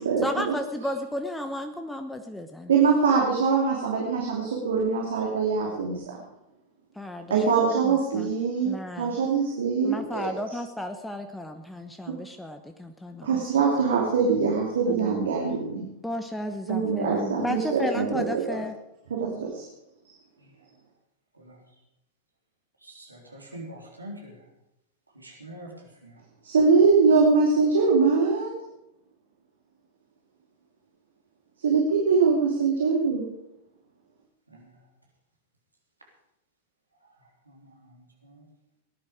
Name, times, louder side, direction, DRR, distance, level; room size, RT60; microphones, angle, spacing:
voice 1, 0.2-2.7 7.0-8.3 8.6-9.2 9.8-13.5 14.9-15.3 16.0-18.7, left 1 dB, 5° left, 7 dB, 1.0 m, -34 dB
voice 2, 2.7-6.2 7.3-10.3 12.1-12.2 13.2-15.9 16.7-18.6 19.1-19.6 26.4-28.5 31.6-33.2, right 5 dB, 65° right, -1 dB, 2.7 m, -23 dB
voice 3, 21.3-21.7 22.8-24.5 25.1-26.2 34.5-34.9 37.0-38.5, right 1 dB, 85° right, -1 dB, 3.4 m, -46 dB
19.5 x 11.0 x 5.0 m, 0.86 s
figure-of-eight pair, 90°, 0 cm